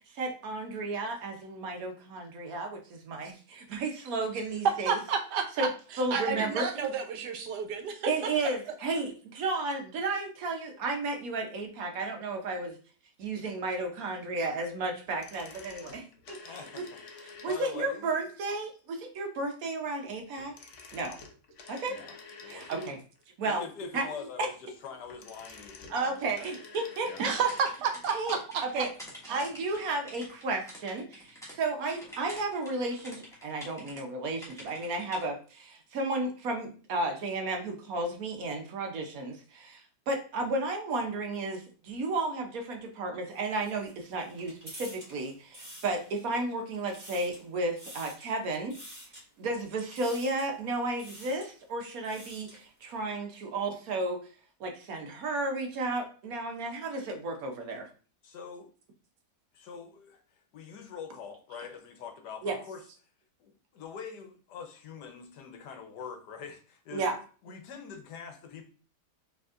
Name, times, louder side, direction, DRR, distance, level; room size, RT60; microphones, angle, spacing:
voice 1, 0.0-5.0 5.6-5.7 6.0-6.9 8.1-12.8 13.2-16.8 17.4-20.6 20.9-21.2 21.7-22.0 22.5-23.0 23.4-23.6 23.9-24.1 24.4-24.5 25.9-27.3 28.1-28.9 29.3-48.8 49.4-54.2 54.6-57.9 62.4-62.6 66.9-67.2, right 2 dB, 65° right, 4 dB, 1.1 m, -33 dB
voice 2, 4.9-5.7 6.1-8.1 27.2-28.4, right 6 dB, 80° right, 5 dB, 1.3 m, -30 dB
sound 1, 15.1-17.9 20.3-23.2 24.9-27.8 28.0-28.1, left 4 dB, 60° left, 0.9 m, -49 dB
voice 3, 16.4-16.8 17.1-18.1 21.9-22.9 23.4-26.5 27.1-27.2 58.2-58.7 59.5-60.2 60.5-62.8 63.4-67.0 67.4-68.6, left 6 dB, 80° left, 6 dB, 1.4 m, -44 dB
sound 2, 26.3-31.6 31.9-34.0 34.4-35.2, left 1 dB, ahead, 1.2 m, -47 dB
sound 3, 43.3-46.4 46.7-47.5 47.8-48.3 48.7-49.2 49.9-50.5 50.9-51.5 51.9-52.6, equal, 25° right, 2.3 m, -48 dB
5.0 x 3.4 x 2.5 m, 0.39 s
omnidirectional pair, 1.8 m